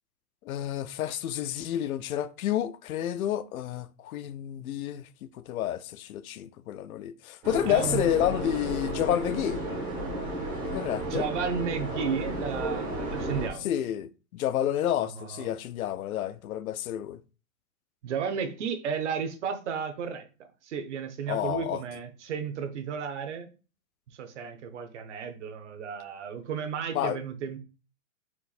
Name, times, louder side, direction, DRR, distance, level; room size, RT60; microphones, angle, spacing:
voice 1, 0.5-9.6 10.7-11.3 13.6-17.2 21.3-21.8 26.9-27.2, left 11 dB, 80° left, 0.5 m, -30 dB
sound 1, 7.4-13.5, right 1 dB, 10° right, 0.5 m, -33 dB
voice 2, 7.7-8.4 11.1-13.7 15.0-15.5 18.0-20.3 20.6-23.5 24.1-27.6, right 7 dB, 55° right, 0.9 m, -33 dB
4.5 x 2.6 x 4.0 m
hypercardioid pair, 165°, 43 cm